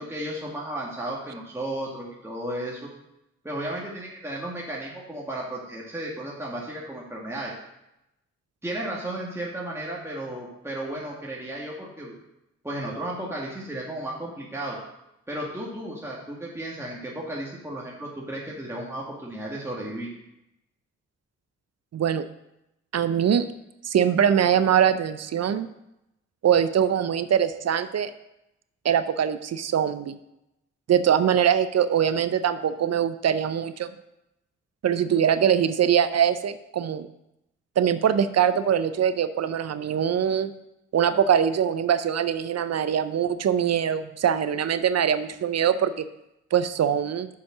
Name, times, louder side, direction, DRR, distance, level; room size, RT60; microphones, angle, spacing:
voice 1, 0.0-2.9 3.4-7.5 8.6-12.2 12.6-14.8 15.3-20.1, right 1 dB, 10° right, -5 dB, 1.9 m, -34 dB
voice 2, 21.9-22.3 22.9-23.5 23.8-25.7 26.4-28.1 28.8-30.1 30.9-33.9 34.8-37.1 37.8-40.5 40.9-46.1 46.5-47.3, right 8 dB, 60° right, 12 dB, 0.6 m, -22 dB
6.5 x 5.8 x 6.0 m, 0.87 s
cardioid pair, 50°, 29 cm